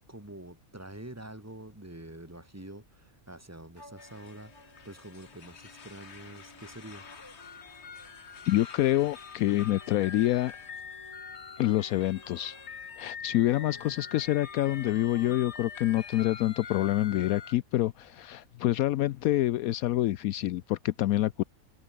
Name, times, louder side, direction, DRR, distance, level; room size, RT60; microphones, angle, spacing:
voice 1, 0.1-7.1, right 1 dB, 10° right, 2.6 m, -46 dB
sound 1, 3.7-16.1, left 1 dB, 15° left, 4.7 m, -56 dB
sound 2, 4.0-17.5, left 6 dB, 50° left, 1.6 m, -45 dB
voice 2, 8.5-10.6 11.6-12.6 13.0-21.4, left 14 dB, 80° left, 1.0 m, -27 dB
omnidirectional pair, 1.5 m